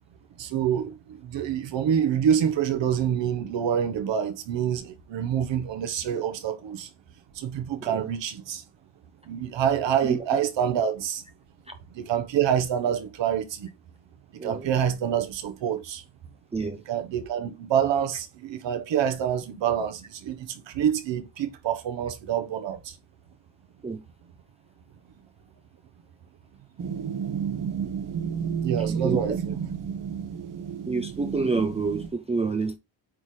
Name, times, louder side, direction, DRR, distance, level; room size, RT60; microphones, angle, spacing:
voice 1, 0.4-6.9 7.3-8.6 9.2-11.2 11.9-13.7 14.3-16.0 16.9-23.0 28.6-29.5, right 9 dB, 75° right, 1.2 m, -27 dB
sound 1, 26.8-32.1, right 7 dB, 45° right, 1.0 m, -31 dB
voice 2, 28.9-29.4 30.9-32.8, right 4 dB, 15° right, 0.4 m, -28 dB
8.9 x 3.9 x 3.2 m
wide cardioid pair, 170°, 44 cm